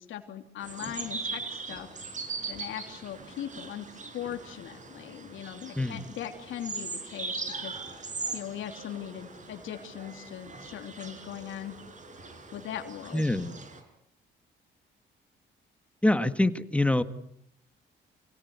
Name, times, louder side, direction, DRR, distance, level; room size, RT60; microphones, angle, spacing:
voice 1, 0.0-3.9 4.1-11.7 12.5-13.2, left 10 dB, 80° left, 5 dB, 3.1 m, -40 dB
sound 1, 0.6-13.8, right 4 dB, 40° right, 5.4 m, -40 dB
voice 2, 5.8-6.1 13.1-13.6 16.0-17.0, left 1 dB, 5° left, 11 dB, 1.7 m, -25 dB
28.0 x 17.5 x 9.7 m, 0.75 s
cardioid pair, 90°, 20 cm